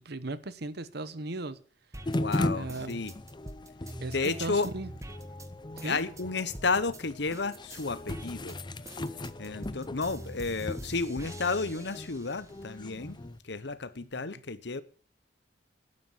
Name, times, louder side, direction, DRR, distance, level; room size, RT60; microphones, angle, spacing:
voice 1, 0.0-1.6 2.5-3.1 4.0-4.9 5.8-6.0, right 2 dB, 65° right, 1.1 m, -37 dB
sound 1, 1.9-7.0 7.3-12.5 13.0-13.9, right 1 dB, 20° right, 1.3 m, -45 dB
voice 2, 2.1-3.1 4.1-4.7 5.8-8.6 9.4-13.2 13.4-14.8, left 4 dB, 70° left, 1.0 m, -32 dB
sound 2, 2.1-13.4, left 1 dB, 25° left, 0.6 m, -38 dB
12.0 x 9.7 x 7.3 m
head